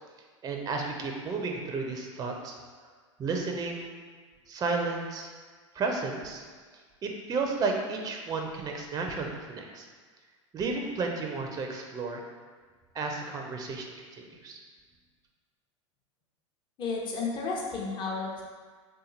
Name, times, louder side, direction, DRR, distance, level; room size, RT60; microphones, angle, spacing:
voice 1, 0.4-2.5 3.2-3.9 4.5-5.3 5.7-6.4 7.0-9.9 10.5-12.2 12.9-14.6, right 4 dB, 25° right, 2 dB, 0.5 m, -32 dB
voice 2, 16.8-18.4, left 4 dB, 30° left, -3 dB, 0.8 m, -32 dB
3.7 x 2.8 x 3.9 m, 1.5 s
figure-of-eight pair, 80°, 16 cm